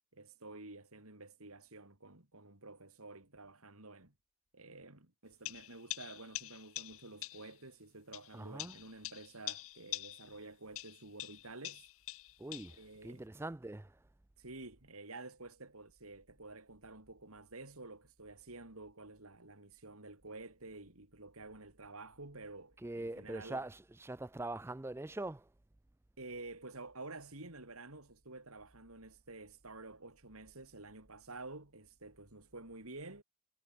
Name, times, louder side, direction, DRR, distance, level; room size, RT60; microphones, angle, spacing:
voice 1, 0.1-4.1 4.5-11.9 12.8-13.2 14.4-23.6 26.2-33.2, right 2 dB, 80° right, 4.1 m, -50 dB
sound 1, 5.4-7.5 8.1-10.4 10.7-12.8, left 17 dB, 65° left, 0.5 m, -45 dB
voice 2, 8.3-8.7 12.4-14.0 22.8-25.5, right 2 dB, 10° right, 0.3 m, -43 dB
head